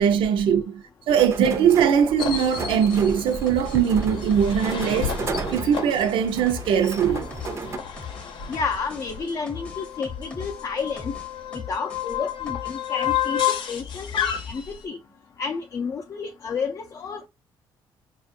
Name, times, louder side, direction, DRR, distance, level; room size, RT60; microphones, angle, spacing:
voice 1, 0.0-5.2 5.5-7.3, right 8 dB, 90° right, 0.6 m, -21 dB
sound 1, 1.1-7.8, right 4 dB, 35° right, 0.5 m, -34 dB
sound 2, 2.2-14.8, left 9 dB, 70° left, 0.7 m, -32 dB
sound 3, 2.5-13.3 13.6-14.5, left 6 dB, 15° left, 0.7 m, -40 dB
voice 2, 8.5-11.1 11.5-13.4 13.7-15.0 15.4-17.3, left 5 dB, 40° left, 0.4 m, -31 dB
4.9 x 2.4 x 2.6 m
cardioid pair, 125°, 8 cm